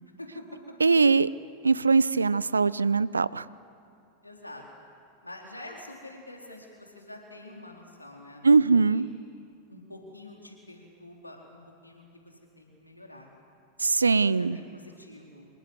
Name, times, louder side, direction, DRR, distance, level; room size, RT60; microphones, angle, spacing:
voice 1, 0.2-0.7 4.2-4.6 5.2-9.1 9.7-13.3 14.1-15.5, left 1 dB, 85° left, 0 dB, 3.9 m, -46 dB
voice 2, 0.8-1.3 1.6-3.5 8.4-9.1 13.8-14.6, right 4 dB, 75° right, 19 dB, 0.6 m, -21 dB
26.5 x 22.5 x 8.0 m, 2.5 s
figure-of-eight pair, 90°, 0 cm